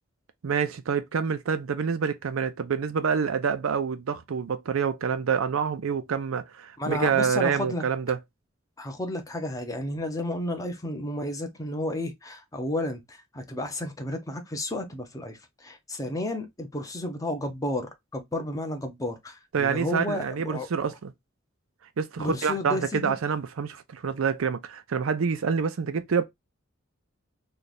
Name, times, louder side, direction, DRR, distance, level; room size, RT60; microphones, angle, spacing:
voice 1, 0.4-8.2 19.5-21.1 22.0-26.2, right 6 dB, 85° right, 0.5 m, -27 dB
voice 2, 6.8-7.8 8.8-20.9 22.2-23.1, left 1 dB, 15° left, 0.8 m, -32 dB
3.2 x 2.3 x 4.0 m
head